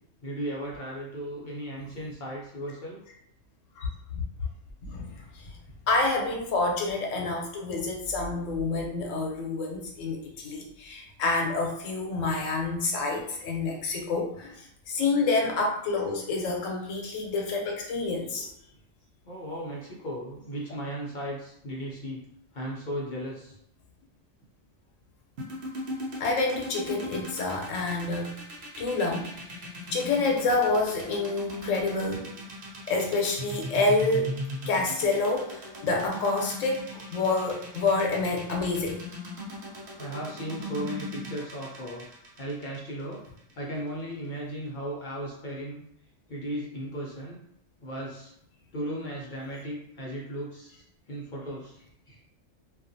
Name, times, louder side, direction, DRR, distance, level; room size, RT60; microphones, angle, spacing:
voice 1, 0.2-3.0 19.2-22.2 22.5-23.6 40.0-42.1 42.4-43.2 43.5-45.8 46.3-47.4 47.8-48.3 48.7-52.2, equal, 55° left, -4 dB, 0.6 m, -36 dB
voice 2, 3.8-4.2 4.8-5.5 5.9-18.5 26.2-28.3 28.8-29.4 29.9-32.3 32.9-34.3 34.7-39.0, left 3 dB, 90° left, 0 dB, 1.0 m, -28 dB
sound 1, 25.4-43.5, equal, 65° right, 0.8 m, -38 dB
2.5 x 2.3 x 2.5 m, 0.72 s
omnidirectional pair, 1.3 m